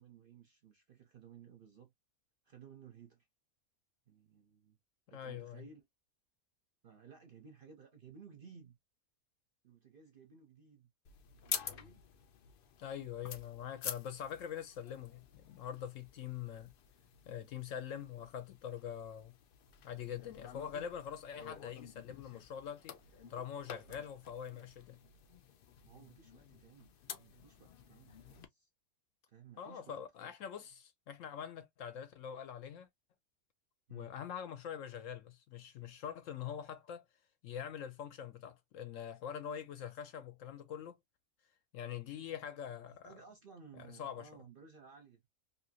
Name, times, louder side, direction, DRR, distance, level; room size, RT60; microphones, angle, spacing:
voice 1, 0.0-1.9 2.4-3.3 4.1-4.8 5.1-5.8 6.8-8.8 9.6-10.9 11.3-12.1 23.2-24.1 24.5-24.7 25.8-28.7 29.3-30.3 33.9-34.1 42.9-45.2, right 6 dB, 50° right, 0.7 m, -58 dB
voice 2, 5.1-5.6 12.8-16.7 17.3-19.3 19.8-23.0 23.3-25.0 29.6-32.9 33.9-37.0 37.4-41.0 41.7-43.2 43.7-44.3, left 8 dB, 70° left, 0.9 m, -44 dB
sound 1, 11.0-28.4, left 8 dB, 85° left, 0.4 m, -49 dB
2.8 x 2.7 x 2.7 m
omnidirectional pair, 1.6 m